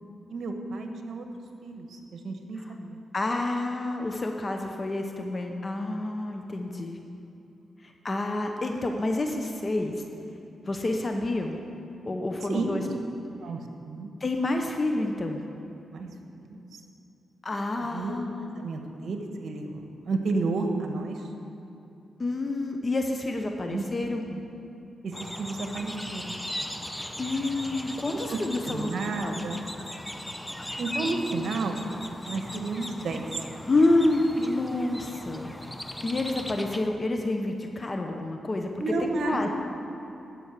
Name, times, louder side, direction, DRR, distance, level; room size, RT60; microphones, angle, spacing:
voice 1, 0.3-1.3 1.6-3.0 12.5-12.9 13.4-14.1 15.9-16.1 16.4-16.8 17.9-18.2 18.6-21.3 23.6-24.4 25.0-26.4 28.1-28.4 28.6-29.6 30.8-31.9 32.3-33.2 38.8-39.5, right 3 dB, 70° right, 4 dB, 1.3 m, -32 dB
voice 2, 3.1-7.0 7.8-9.9 10.7-11.6 12.0-12.8 14.2-15.4 17.4-18.6 22.2-24.3 27.2-28.9 29.2-29.4 33.7-35.5 36.0-39.5, left 2 dB, 35° left, 3 dB, 0.9 m, -28 dB
sound 1, 25.1-36.9, left 1 dB, 5° left, 0.8 m, -38 dB
11.5 x 6.4 x 8.3 m, 2.8 s
cardioid pair, 70°, 0 cm